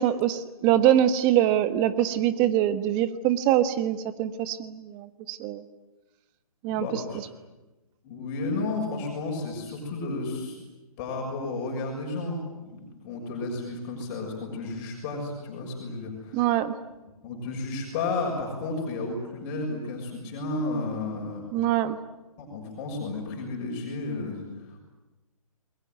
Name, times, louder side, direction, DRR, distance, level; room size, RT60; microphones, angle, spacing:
voice 1, 0.0-5.6 6.6-7.0 16.3-16.7 21.5-22.0, right 11 dB, 20° right, 12 dB, 1.3 m, -24 dB
voice 2, 6.7-7.2 8.0-10.6 11.0-16.4 17.2-21.4 22.4-24.8, left 3 dB, 30° left, 0 dB, 6.7 m, -32 dB
29.0 x 22.0 x 9.4 m, 1.1 s
figure-of-eight pair, 140°, 19 cm